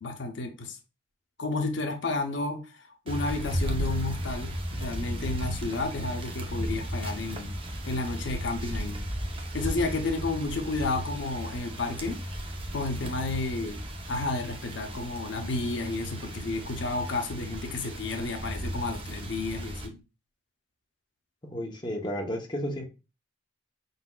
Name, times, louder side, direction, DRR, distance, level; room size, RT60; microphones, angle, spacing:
voice 1, 0.0-0.8 1.4-7.5 7.9-9.0 9.5-12.2 12.7-13.8 14.1-20.0, left 3 dB, 70° left, 0.7 m, -32 dB
sound 1, 3.1-19.9, equal, 25° right, 0.7 m, -35 dB
voice 2, 21.4-22.9, equal, 25° left, 0.7 m, -32 dB
4.8 x 4.0 x 2.3 m
head